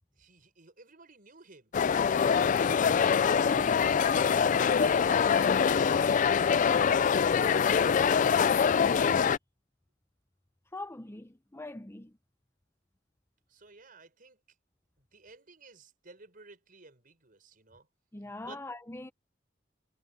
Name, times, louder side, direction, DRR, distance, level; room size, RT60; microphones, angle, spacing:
voice 1, 0.1-3.8 4.2-7.6 13.5-14.4 15.0-17.9 18.4-18.6, right 3 dB, 50° right, 5.6 m, -54 dB
sound 1, 1.7-9.4, left 6 dB, 45° left, 0.4 m, -24 dB
voice 2, 10.7-12.2 18.1-19.1, left 2 dB, 15° left, 0.7 m, -42 dB
head